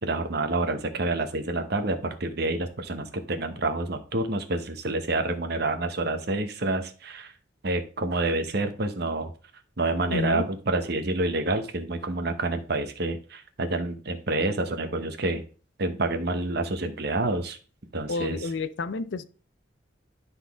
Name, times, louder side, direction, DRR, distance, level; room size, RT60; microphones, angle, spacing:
voice 1, 0.0-7.3 7.6-9.3 9.8-15.4 15.8-17.6 17.9-18.5, right 2 dB, 55° right, 8 dB, 0.9 m, -28 dB
voice 2, 10.1-10.5 18.1-19.2, left 3 dB, 70° left, 14 dB, 0.5 m, -29 dB
11.5 x 4.0 x 3.5 m, 0.38 s
head